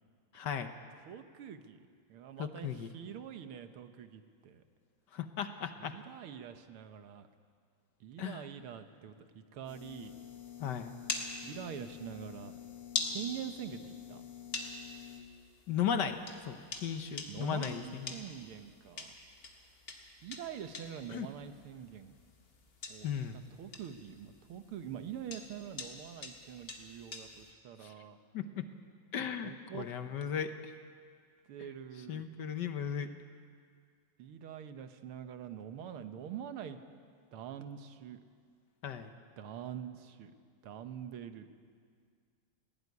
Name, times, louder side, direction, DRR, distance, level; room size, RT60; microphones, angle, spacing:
voice 1, 0.3-0.7 2.4-2.9 5.1-6.0 8.2-8.4 10.6-10.9 15.7-16.2 16.4-18.2 21.1-21.3 23.0-23.4 27.8-27.9 28.3-28.7 29.1-30.7 32.1-33.1 38.8-39.1, left 8 dB, 60° left, 9 dB, 1.4 m, -36 dB
voice 2, 1.1-2.7 2.9-4.6 5.8-7.3 8.0-9.1 9.5-10.1 11.4-12.5 13.0-14.3 17.3-19.1 20.2-22.1 22.9-28.2 29.2-29.9 31.5-32.3 34.2-36.8 37.3-38.2 39.4-40.3 40.6-41.5, right 9 dB, 90° right, 9 dB, 2.0 m, -45 dB
sound 1, 9.6-27.5, left 3 dB, 45° left, 2.5 m, -45 dB
sound 2, 9.7-15.2, left 11 dB, 85° left, 3.0 m, -49 dB
19.5 x 17.0 x 9.6 m, 2.1 s
omnidirectional pair, 2.3 m